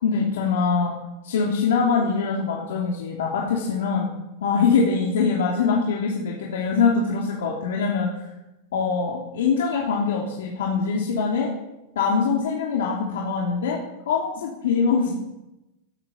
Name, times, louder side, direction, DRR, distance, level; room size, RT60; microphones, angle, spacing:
voice 1, 0.0-0.9 1.2-4.1 4.4-8.1 8.7-11.5 11.9-13.8 14.1-15.1, left 5 dB, 80° left, -2 dB, 3.2 m, -23 dB
18.0 x 9.2 x 7.2 m, 0.98 s
supercardioid pair, 165°, 0 cm